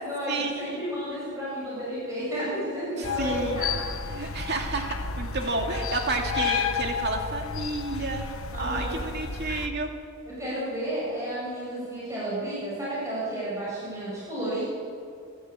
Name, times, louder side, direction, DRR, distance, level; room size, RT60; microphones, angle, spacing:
voice 1, 0.0-3.8 8.5-9.0 10.4-14.6, right 1 dB, 15° right, -8 dB, 7.7 m, -32 dB
sound 1, 3.0-9.7, left 5 dB, 70° left, 1.2 m, -32 dB
voice 2, 3.0-3.6 4.1-8.2 8.6-9.9, right 3 dB, 50° right, 2 dB, 2.4 m, -30 dB
29.0 x 13.5 x 8.4 m, 2.4 s
head